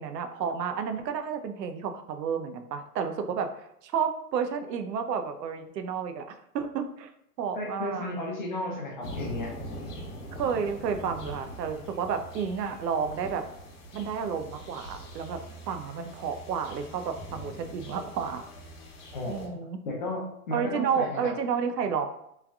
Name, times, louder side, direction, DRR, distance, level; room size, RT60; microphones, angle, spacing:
voice 1, 0.0-6.3 6.5-7.1 7.4-8.2 10.4-13.4 13.9-15.4 15.7-18.4 19.3-19.8 20.5-22.1, right 6 dB, 90° right, 7 dB, 0.5 m, -31 dB
voice 2, 7.5-9.5 19.1-19.6 19.8-21.3, left 1 dB, 35° left, -1 dB, 0.4 m, -34 dB
sound 1, 9.0-19.5, equal, 75° left, 1.0 m, -43 dB
3.2 x 2.3 x 2.3 m, 0.77 s
hypercardioid pair, 145°, 48 cm